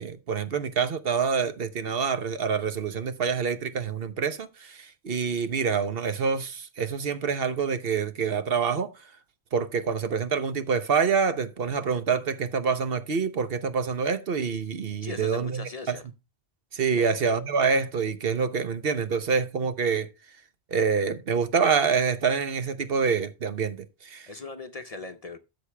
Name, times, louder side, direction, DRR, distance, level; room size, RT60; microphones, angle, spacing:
voice 1, 0.0-8.9 9.5-16.0 16.7-20.1 20.7-24.3, right 5 dB, 60° right, 1.1 m, -26 dB
voice 2, 15.0-16.0 17.0-17.2 24.3-25.4, left 3 dB, 40° left, 0.7 m, -39 dB
13.0 x 6.6 x 3.3 m
omnidirectional pair, 1.1 m